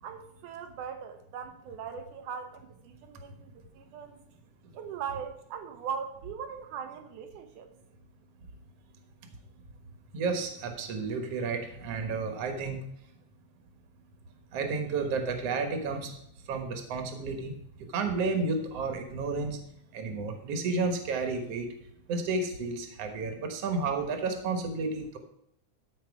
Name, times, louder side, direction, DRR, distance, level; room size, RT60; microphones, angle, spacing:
voice 1, 0.0-4.2 4.8-7.7, right 7 dB, 80° right, 2.2 m, -40 dB
voice 2, 10.1-12.8 14.5-16.2 16.5-17.6 17.9-19.6 19.9-21.7 22.1-25.2, right 4 dB, 55° right, 2.3 m, -31 dB
13.5 x 5.9 x 4.8 m
omnidirectional pair, 3.6 m